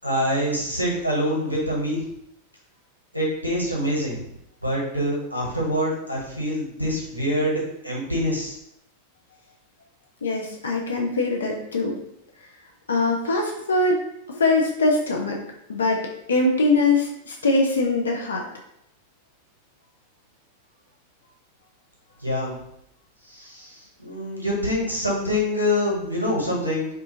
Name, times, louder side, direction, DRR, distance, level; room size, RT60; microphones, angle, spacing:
voice 1, 0.0-2.0 3.1-4.2 4.6-8.6 22.2-22.5 23.2-26.9, equal, 90° right, -4 dB, 0.8 m, -25 dB
voice 2, 10.2-12.0 12.9-14.0 14.4-15.4 15.7-16.0 16.3-18.4, left 2 dB, 70° left, 0 dB, 0.4 m, -22 dB
2.4 x 2.3 x 2.7 m, 0.78 s
figure-of-eight pair, 90°, 0 cm